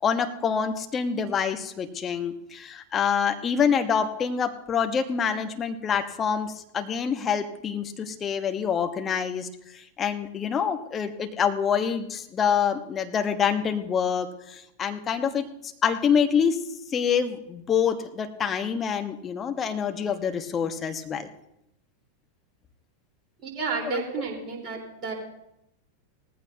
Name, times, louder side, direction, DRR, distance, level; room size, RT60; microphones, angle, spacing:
voice 1, 0.0-15.4 15.8-21.3 23.8-24.0, left 7 dB, 25° left, 6 dB, 1.2 m, -26 dB
voice 2, 23.4-25.1, right 5 dB, 30° right, -1 dB, 4.0 m, -31 dB
18.5 x 15.0 x 2.8 m, 0.83 s
figure-of-eight pair, 90°, 0 cm